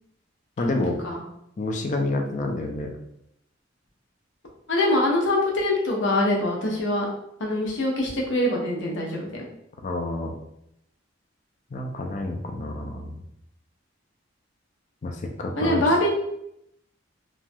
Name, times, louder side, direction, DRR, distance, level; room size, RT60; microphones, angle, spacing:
voice 1, 0.6-1.0 1.6-2.9 9.8-10.3 11.7-13.2 15.0-15.9, left 2 dB, 40° left, 3 dB, 0.4 m, -28 dB
voice 2, 4.7-7.1 7.4-9.4 15.6-16.1, left 1 dB, 80° left, -2 dB, 0.7 m, -23 dB
3.0 x 2.2 x 2.6 m, 0.77 s
head